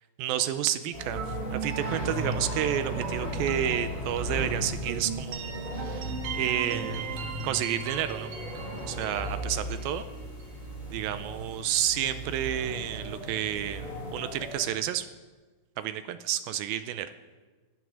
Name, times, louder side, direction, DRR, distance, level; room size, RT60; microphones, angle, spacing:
voice 1, 0.2-1.2 1.5-8.3 8.9-10.1 10.9-15.1 15.8-17.1, right 11 dB, 80° right, 11 dB, 2.2 m, -30 dB
sound 1, 0.9-14.6, equal, 20° left, 5.8 m, -36 dB
sound 2, 1.2-10.9, right 4 dB, 65° right, 2.3 m, -38 dB
19.0 x 11.0 x 6.4 m, 1.3 s
omnidirectional pair, 4.8 m